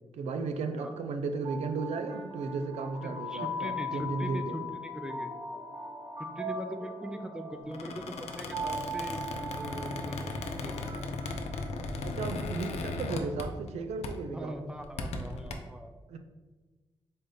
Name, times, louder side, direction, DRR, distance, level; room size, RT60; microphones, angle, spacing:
voice 1, 0.1-4.5 12.0-14.6 16.1-16.2, right 4 dB, 90° right, 7 dB, 0.4 m, -35 dB
sound 1, 1.2-12.3, left 1 dB, 40° right, 0.9 m, -39 dB
voice 2, 3.0-5.3 6.2-9.2 9.5-10.2 10.5-10.9 14.3-15.9, equal, 5° right, 6 dB, 0.5 m, -41 dB
Squeak, 7.7-13.8 14.0-14.3 14.8-15.5, left 3 dB, 85° left, 0.5 m, -37 dB
4.0 x 3.3 x 3.8 m, 1.2 s
cardioid pair, 65°, 11 cm